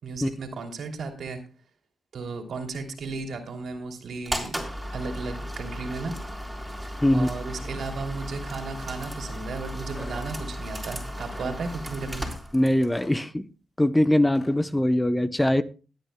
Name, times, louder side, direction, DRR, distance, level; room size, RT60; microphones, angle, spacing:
voice 1, 0.0-1.4 2.1-4.6 4.9-6.2 7.1-12.3, right 4 dB, 70° right, 3.0 m, -34 dB
sound 1, 4.2-13.0, equal, 5° right, 3.6 m, -35 dB
sound 2, 9.9-10.3 11.2-11.5 12.9-13.2 14.3-14.5, left 2 dB, 30° left, 7.9 m, -43 dB
voice 2, 12.5-13.5 13.8-15.6, left 1 dB, 10° left, 0.8 m, -22 dB
21.5 x 9.3 x 2.2 m
cardioid pair, 60°, 0 cm